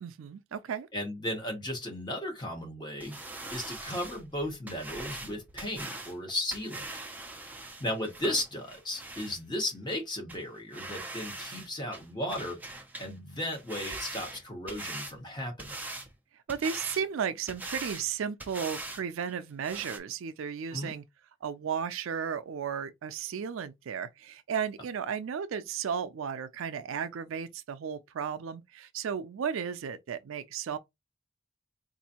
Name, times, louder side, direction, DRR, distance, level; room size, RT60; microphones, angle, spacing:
voice 1, 0.0-0.9 16.5-21.0 21.4-30.8, right 7 dB, 75° right, 0.4 m, -34 dB
voice 2, 0.9-3.1 3.5-6.9 7.8-12.6 13.0-15.8 20.7-20.9, left 1 dB, 20° left, 1.3 m, -35 dB
sound 1, 3.0-9.4 9.9-10.0 10.3-10.4 10.7-11.7 11.9-13.1 13.4-15.1 15.6-16.1 16.5-17.0 17.5-18.1 18.4-19.0 19.3-19.4 19.6-20.0, right 2 dB, 10° right, 0.5 m, -41 dB
4.0 x 2.6 x 2.9 m
head